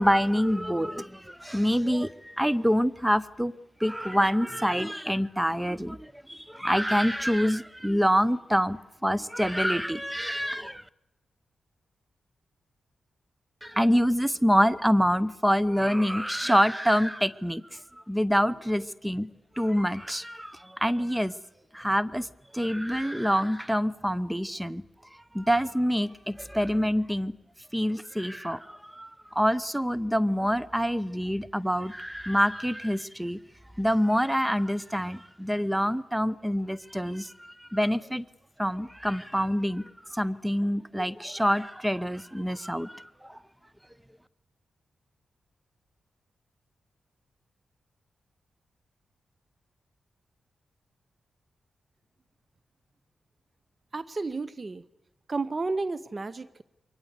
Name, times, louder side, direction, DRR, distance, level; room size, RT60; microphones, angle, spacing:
voice 1, 0.0-3.5 3.8-10.8 13.6-17.8 18.1-19.3 19.6-21.3 21.7-22.3 22.5-24.8 25.3-27.3 27.7-33.4 33.8-38.2 38.6-43.4, equal, 5° right, 18 dB, 0.8 m, -26 dB
voice 2, 53.9-54.8 55.3-56.6, right 3 dB, 40° right, 16 dB, 0.8 m, -32 dB
23.0 x 19.5 x 8.2 m, 0.94 s
cardioid pair, 50°, 0 cm